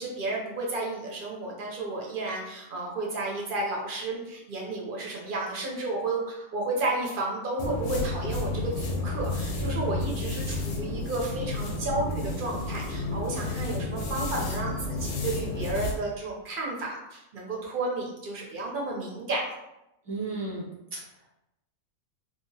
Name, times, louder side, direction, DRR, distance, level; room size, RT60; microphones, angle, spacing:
voice 1, 0.0-19.5, right 2 dB, 60° right, -2 dB, 0.5 m, -32 dB
sound 1, 7.6-16.0, left 2 dB, 90° left, 1.1 m, -31 dB
voice 2, 20.0-21.3, right 3 dB, 20° left, -8 dB, 0.6 m, -35 dB
2.8 x 2.3 x 2.6 m, 0.89 s
omnidirectional pair, 1.5 m